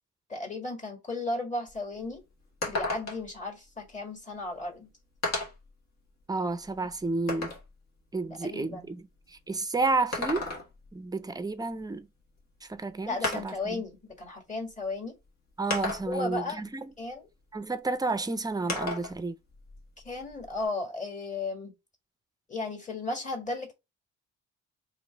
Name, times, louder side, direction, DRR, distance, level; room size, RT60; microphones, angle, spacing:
voice 1, 0.3-2.2 2.7-4.9 8.4-8.9 13.1-15.1 16.1-16.6 17.0-17.3 20.1-21.7 22.5-23.7, left 2 dB, 25° left, 1.7 m, -35 dB
sound 1, 1.7-1.8 2.1-2.2 2.6-3.4 4.4-4.5 5.2-5.7 6.3-7.7 9.9-10.9 12.4-12.5 13.2-13.7 14.7-14.8 15.7-16.3 18.7-19.2 19.5-20.6, left 2 dB, 60° left, 1.7 m, -34 dB
voice 2, 6.3-7.5 8.1-10.6 10.9-12.1 12.6-13.8 15.6-16.9 17.5-19.4, right 3 dB, 15° right, 0.5 m, -31 dB
3.0 x 3.0 x 4.4 m
cardioid pair, 90°, 30 cm